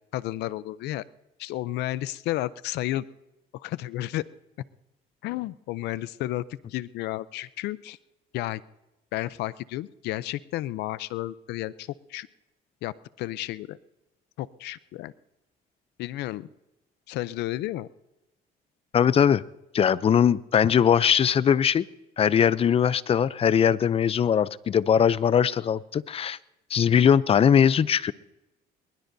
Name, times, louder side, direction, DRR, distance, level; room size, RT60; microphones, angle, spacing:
voice 1, 0.1-1.0 1.4-3.1 3.5-4.2 5.2-6.4 6.7-8.0 8.3-8.6 9.1-12.3 12.8-13.8 14.4-15.1 16.0-16.5 17.1-17.9, left 15 dB, 80° left, 18 dB, 0.6 m, -32 dB
voice 2, 18.9-19.4 19.7-21.9 22.2-26.4 26.7-28.1, left 8 dB, 35° left, 19 dB, 0.5 m, -21 dB
22.0 x 21.0 x 2.7 m, 0.96 s
cardioid pair, 110°, 17 cm